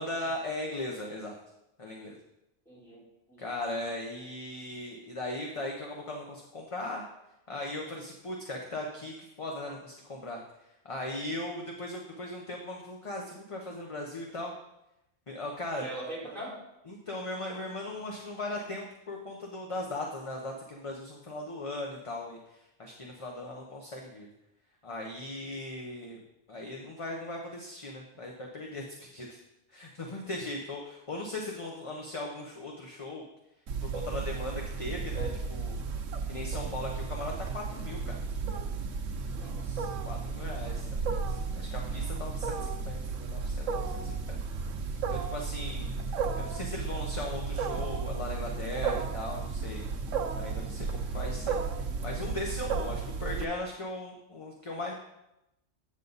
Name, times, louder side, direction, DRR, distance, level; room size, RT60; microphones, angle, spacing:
voice 1, 0.0-1.3 1.8-2.2 3.4-7.0 7.5-10.4 10.8-14.5 15.3-15.8 16.9-24.3 24.8-26.2 26.5-29.4 29.7-33.2 33.8-35.8 36.3-38.2 40.0-44.4 44.9-45.9 46.4-49.8 50.4-54.9, left 1 dB, 30° left, 0 dB, 0.8 m, -38 dB
voice 2, 2.6-3.0 3.3-3.5 15.8-16.6 39.3-39.9, right 1 dB, ahead, -7 dB, 3.4 m, -42 dB
Wild animals, 33.7-53.4, right 5 dB, 85° right, 1.1 m, -34 dB
8.2 x 7.4 x 4.0 m, 0.88 s
omnidirectional pair, 1.3 m